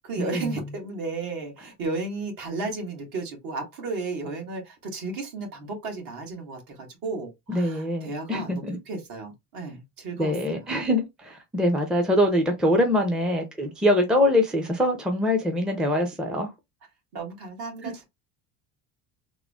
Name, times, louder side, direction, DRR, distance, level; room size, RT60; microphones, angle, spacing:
voice 1, 0.0-10.6 13.0-13.1 17.1-18.0, right 3 dB, 55° right, 1.7 m, -34 dB
voice 2, 7.5-8.8 10.2-16.5 17.8-17.9, left 1 dB, ahead, 0.5 m, -24 dB
3.6 x 2.1 x 3.5 m
cardioid pair, 130°, 40 cm